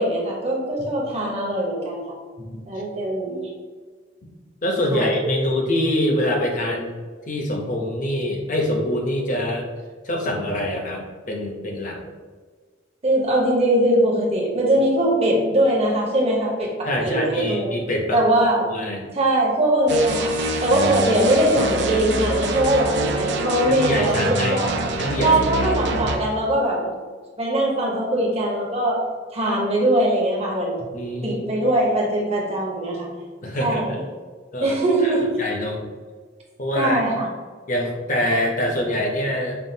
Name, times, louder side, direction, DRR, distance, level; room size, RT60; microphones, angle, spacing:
voice 1, 0.0-2.1 2.7-3.5 4.9-5.0 13.0-17.7 18.1-18.7 19.1-20.3 20.6-24.7 25.2-26.9 27.4-29.0 29.3-30.8 31.2-33.1 33.6-34.0 34.6-35.3 36.7-37.3, right 1 dB, 35° right, -2 dB, 0.9 m, -21 dB
voice 2, 4.6-6.9 7.3-9.7 10.0-12.0 16.8-19.1 23.7-24.6 25.0-25.3 25.6-25.7 30.8-31.4 33.4-33.8 34.5-35.1 35.4-35.8 36.6-37.0 37.7-39.6, left 1 dB, 45° left, 0 dB, 0.8 m, -25 dB
sound 1, 19.9-26.2, right 2 dB, 65° right, 0.5 m, -25 dB
5.5 x 2.4 x 2.7 m, 1.5 s
head